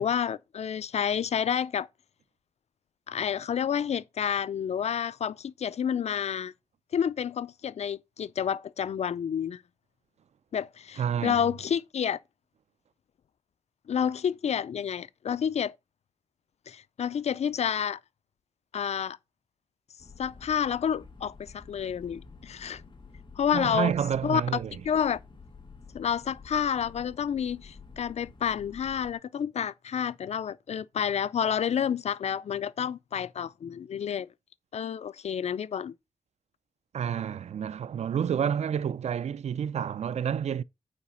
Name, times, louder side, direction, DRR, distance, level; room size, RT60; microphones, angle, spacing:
voice 1, 0.0-1.9 3.1-6.5 6.9-9.6 10.5-12.2 13.9-15.7 16.7-18.0 18.7-19.2 20.2-22.8 23.4-23.9 24.2-24.4 24.8-25.2 25.9-34.3 34.7-35.9, left 8 dB, 80° left, 0.4 m, -29 dB
voice 2, 11.0-11.4 23.5-24.8 36.9-40.6, right 8 dB, 85° right, 0.4 m, -29 dB
sound 1, 20.0-29.1, left 4 dB, 45° left, 1.9 m, -50 dB
8.4 x 4.9 x 6.2 m
wide cardioid pair, 100°, 11 cm